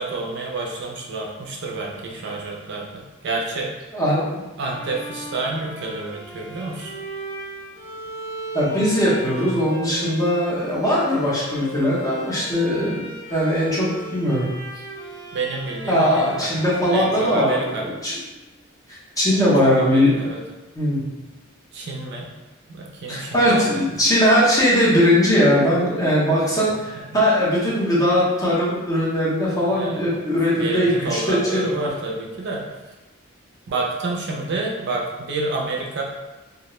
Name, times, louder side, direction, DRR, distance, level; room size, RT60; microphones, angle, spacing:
voice 1, 0.0-3.8 4.6-6.9 15.3-16.5 16.9-17.8 19.3-20.4 21.7-22.3 22.7-23.8 27.0-27.1 29.6-30.0 30.5-32.6 33.7-36.0, right 3 dB, 55° right, -1 dB, 0.4 m, -29 dB
voice 2, 3.9-4.4 8.5-13.0 13.3-14.4 15.9-18.2 19.2-20.1 20.7-21.0 23.1-31.9, equal, 15° left, -7 dB, 0.7 m, -20 dB
Bowed string instrument, 4.6-18.5, equal, 50° left, 1.5 m, -37 dB
2.4 x 2.1 x 2.9 m, 1.1 s
head